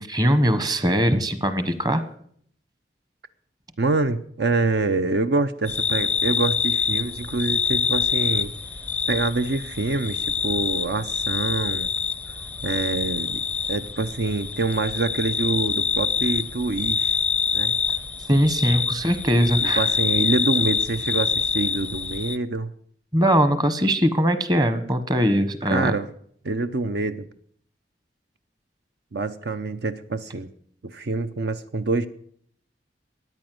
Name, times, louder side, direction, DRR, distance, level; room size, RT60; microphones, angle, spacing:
voice 1, 0.0-2.0 18.3-19.9 23.1-25.9, equal, 25° right, 11 dB, 1.2 m, -21 dB
voice 2, 3.8-8.5 9.1-11.9 12.6-13.4 13.7-17.2 17.5-17.8 19.6-22.7 25.7-26.1 26.4-27.3 29.1-30.5 30.8-32.1, right 3 dB, 65° right, 10 dB, 0.7 m, -26 dB
sound 1, 5.7-22.4, left 5 dB, 10° left, 0.5 m, -26 dB
14.0 x 9.5 x 7.8 m, 0.64 s
head